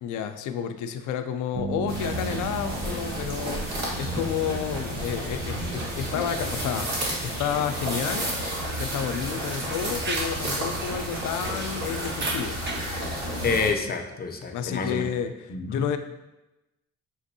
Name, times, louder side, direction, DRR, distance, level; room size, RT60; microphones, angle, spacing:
voice 1, 0.0-6.9 7.2-8.3 8.7-12.6 14.5-15.3 15.7-16.0, left 8 dB, 80° left, 8 dB, 0.4 m, -30 dB
sound 1, 1.5-5.3, right 4 dB, 80° right, 0.5 m, -37 dB
sound 2, 1.9-13.7, right 1 dB, 60° right, 1.5 m, -31 dB
Conversation, 4.6-13.2, right 3 dB, 40° right, 0.6 m, -40 dB
voice 2, 13.4-15.1 15.5-15.8, left 4 dB, 30° left, 4 dB, 0.5 m, -28 dB
6.7 x 2.6 x 2.7 m, 1.0 s
cardioid pair, 90°, 30 cm